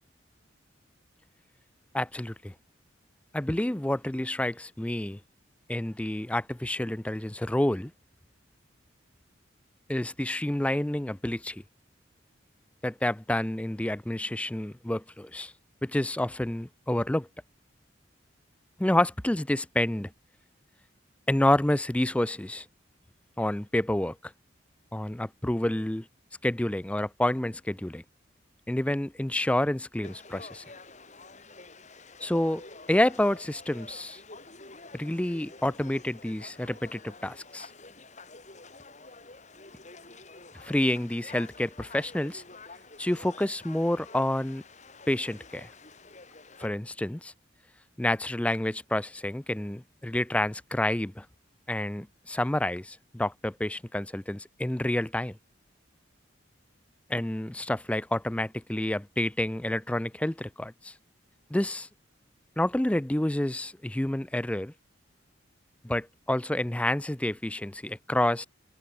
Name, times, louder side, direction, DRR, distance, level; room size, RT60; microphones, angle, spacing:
voice 1, 1.9-2.5 3.3-5.2 5.7-7.9 9.9-11.6 12.8-15.5 15.8-17.3 18.8-20.1 21.3-22.7 23.4-24.3 24.9-26.1 26.4-28.0 28.7-30.6 32.2-32.6 32.9-34.2 34.9-37.7 40.6-42.4 43.0-44.6 45.1-45.7 46.6-47.3 48.0-51.3 51.7-55.4 57.1-60.9 61.5-61.9 62.6-64.7 65.8-68.5, left 1 dB, 5° left, 0.4 m, -29 dB
Conversation / Crowd, 30.0-46.7, left 3 dB, 35° left, 4.6 m, -49 dB
head